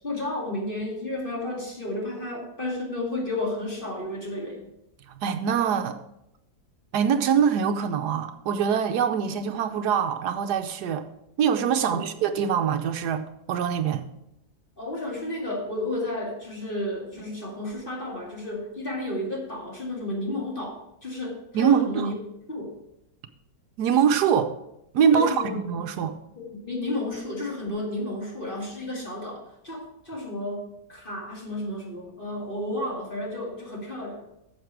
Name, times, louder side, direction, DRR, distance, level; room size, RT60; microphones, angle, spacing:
voice 1, 0.0-4.7 11.7-12.1 14.8-22.1 22.5-22.7 25.1-25.6 26.4-34.2, left 1 dB, 30° left, -2 dB, 2.4 m, -32 dB
voice 2, 5.2-6.0 6.9-11.0 11.4-14.0 21.5-22.1 23.8-24.5 24.9-26.1, right 7 dB, 70° right, 7 dB, 1.2 m, -23 dB
9.8 x 7.3 x 4.6 m, 0.83 s
omnidirectional pair, 1.8 m